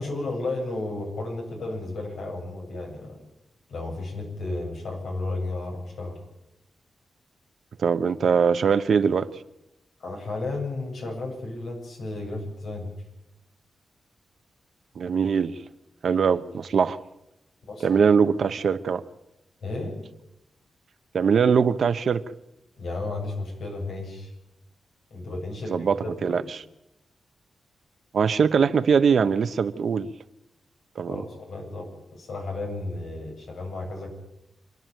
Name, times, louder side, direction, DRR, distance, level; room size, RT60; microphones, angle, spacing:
voice 1, 0.0-3.2 3.7-6.2 10.0-12.9 17.7-18.1 19.6-19.9 22.8-24.3 25.1-26.4 31.1-34.1, left 2 dB, 90° left, 1 dB, 7.8 m, -33 dB
voice 2, 7.8-9.3 15.0-15.6 16.0-17.0 17.8-19.0 21.1-22.2 25.7-26.0 26.2-26.6 28.1-30.1 31.0-31.2, right 6 dB, 70° right, 12 dB, 1.0 m, -22 dB
27.0 x 11.0 x 9.1 m, 0.90 s
wide cardioid pair, 100°, 0 cm